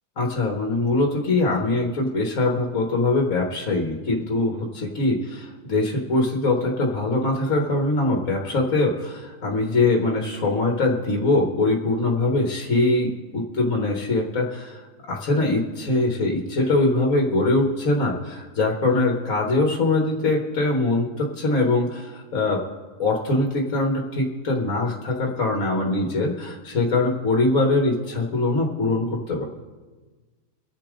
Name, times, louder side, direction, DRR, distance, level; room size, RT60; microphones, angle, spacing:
voice 1, 0.2-14.8 15.1-22.6 23.0-29.4, left 2 dB, 60° left, 0 dB, 1.9 m, -22 dB
24.5 x 8.6 x 3.8 m, 1.3 s
omnidirectional pair, 1.6 m